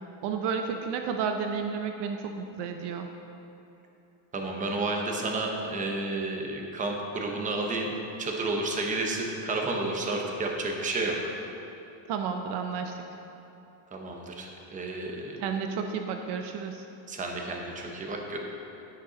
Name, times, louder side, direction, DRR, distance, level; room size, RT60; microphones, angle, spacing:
voice 1, 0.2-3.1 12.1-13.0 15.4-16.8, right 6 dB, 55° right, 5 dB, 0.6 m, -31 dB
voice 2, 4.3-7.9 8.2-11.3 13.9-15.4 17.1-18.4, right 2 dB, 15° right, 1 dB, 0.7 m, -31 dB
10.0 x 6.5 x 5.1 m, 2.9 s
cardioid pair, 170°, 50 cm